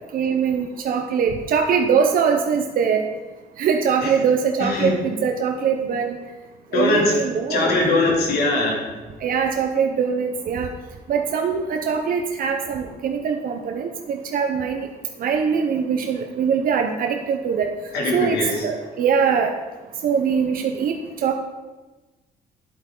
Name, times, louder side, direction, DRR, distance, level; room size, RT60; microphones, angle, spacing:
voice 1, 0.1-3.0 3.6-6.2 6.7-7.8 9.2-10.7 11.1-14.9 15.2-17.7 18.1-19.5 20.0-20.9 21.2-21.4, right 6 dB, 65° right, 4 dB, 0.8 m, -22 dB
voice 2, 4.6-4.9 6.7-7.2 7.5-8.8 17.9-18.7, left 2 dB, 90° left, -2 dB, 2.8 m, -21 dB
10.5 x 8.2 x 3.9 m, 1.2 s
cardioid pair, 140°, 16 cm